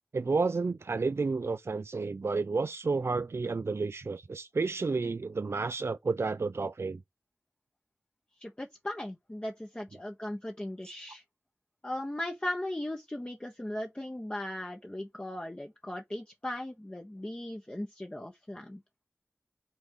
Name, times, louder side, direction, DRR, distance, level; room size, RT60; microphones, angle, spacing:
voice 1, 0.1-7.0, right 4 dB, 65° right, 0.4 m, -31 dB
voice 2, 8.4-11.2 11.8-18.8, left 1 dB, 20° left, 1.0 m, -38 dB
6.0 x 3.5 x 5.5 m
wide cardioid pair, 50°, 5 cm